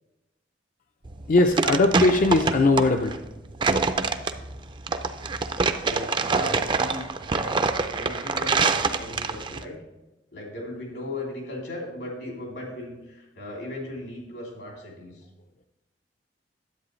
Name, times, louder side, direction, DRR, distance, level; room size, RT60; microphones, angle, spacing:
sound 1, 1.0-9.6, right 4 dB, 25° right, 0.4 m, -25 dB
voice 1, 1.3-3.1, left 2 dB, 50° left, 5 dB, 0.4 m, -20 dB
voice 2, 5.7-9.8 10.3-15.2, left 1 dB, 85° left, -2 dB, 2.9 m, -37 dB
10.0 x 8.1 x 3.1 m, 1.0 s
head